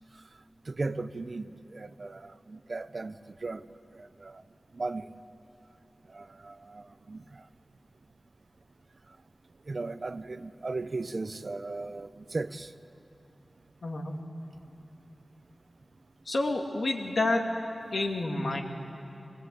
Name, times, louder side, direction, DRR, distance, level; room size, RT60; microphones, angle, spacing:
voice 1, 0.7-3.2 3.4-3.6 3.9-4.4 4.7-5.1 6.1-7.2 9.7-12.7, right 3 dB, 55° right, 12 dB, 0.7 m, -36 dB
voice 2, 13.8-14.1 16.3-17.5 17.9-18.6, left 2 dB, 75° left, 1 dB, 2.3 m, -29 dB
24.5 x 20.5 x 8.4 m, 2.8 s
wide cardioid pair, 70°, 0 cm